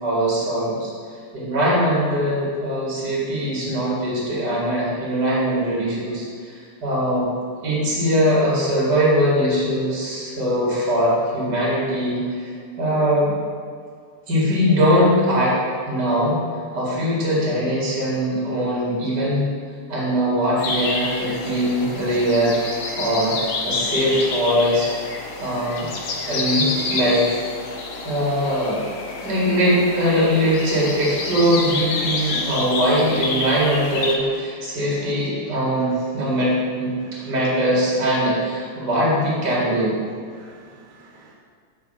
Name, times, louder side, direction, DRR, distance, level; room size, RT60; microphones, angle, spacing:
voice 1, 0.0-0.9 1.3-7.3 7.6-12.5 12.8-13.3 14.3-15.6 15.9-16.4 16.7-19.5 19.9-22.6 22.9-23.4 23.6-25.9 26.3-27.4 28.0-28.8 29.2-36.9 37.2-39.9, equal, 35° right, -6 dB, 2.6 m, -21 dB
sound 1, 20.6-34.2, left 3 dB, 65° left, 1.7 m, -28 dB
voice 2, 40.4-41.3, right 4 dB, 80° right, -2 dB, 2.2 m, -48 dB
6.9 x 5.2 x 5.5 m, 2.1 s
omnidirectional pair, 3.4 m